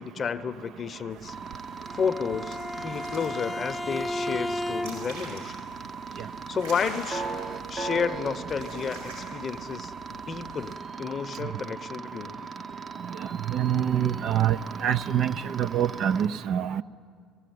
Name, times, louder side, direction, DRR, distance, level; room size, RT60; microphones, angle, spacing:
voice 1, 0.0-1.4 1.9-5.5 6.1-7.2 7.7-12.5, left 6 dB, 40° left, 12 dB, 0.8 m, -32 dB
sound 1, 1.1-10.8, right 2 dB, 85° right, 7.5 m, -45 dB
sound 2, 1.3-16.3, right 4 dB, 40° right, 0.8 m, -39 dB
Bowed string instrument, 1.9-5.3, left 1 dB, 15° left, 0.4 m, -34 dB
voice 2, 13.5-14.6 14.8-16.8, right 10 dB, 55° right, 11 dB, 0.5 m, -25 dB
18.5 x 16.5 x 9.3 m, 2.1 s
hypercardioid pair, 60°, 0 cm